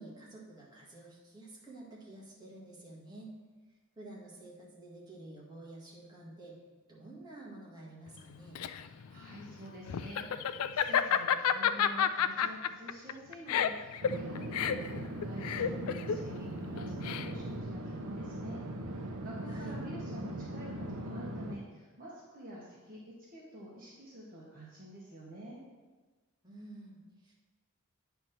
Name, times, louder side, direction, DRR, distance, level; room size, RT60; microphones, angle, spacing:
voice 1, 0.0-3.4 4.0-6.6 6.9-8.6 19.5-19.8 26.4-27.3, right 2 dB, 20° right, -5 dB, 1.8 m, -50 dB
Laughter, 8.2-17.6, left 8 dB, 80° left, 0.4 m, -31 dB
voice 2, 8.8-18.6 18.9-23.0 23.3-25.6, equal, 40° right, -5 dB, 1.3 m, -48 dB
sound 1, 14.0-21.5, right 1 dB, 75° right, 0.8 m, -40 dB
9.3 x 3.5 x 5.8 m, 1.3 s
head